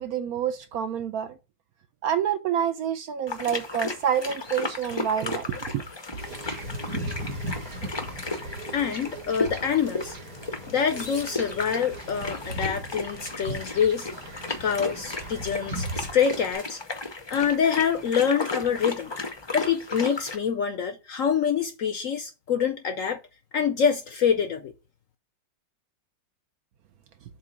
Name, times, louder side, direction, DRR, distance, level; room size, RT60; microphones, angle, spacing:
voice 1, 0.0-1.4 2.0-5.8, right 9 dB, 70° right, 0.9 m, -28 dB
sound 1, 3.3-20.4, left 3 dB, 40° left, 0.3 m, -35 dB
Wind / Ocean / Boat Water vehicle, 6.2-16.5, right 1 dB, 55° right, 2.1 m, -37 dB
voice 2, 8.7-10.2 10.7-14.1 14.6-16.8 17.3-19.1 19.5-23.2 23.5-24.7, left 7 dB, 65° left, 0.8 m, -25 dB
7.5 x 2.7 x 5.7 m
omnidirectional pair, 1.9 m